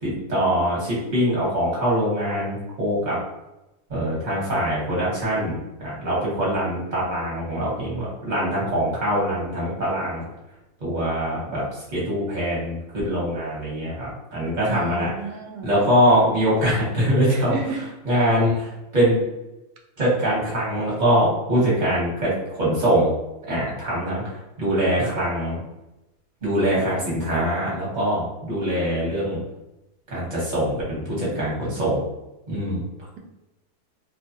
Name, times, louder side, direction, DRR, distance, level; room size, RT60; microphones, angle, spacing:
voice 1, 0.0-3.2 3.9-10.2 10.8-11.6 11.9-15.1 15.6-19.2 20.0-23.1 23.5-25.6 26.4-29.4 30.1-32.0 32.5-32.8, equal, 30° right, -7 dB, 1.1 m, -23 dB
voice 2, 14.6-15.7 17.3-17.8, right 5 dB, 75° right, 2 dB, 1.0 m, -32 dB
2.7 x 2.3 x 2.6 m, 0.96 s
omnidirectional pair, 1.7 m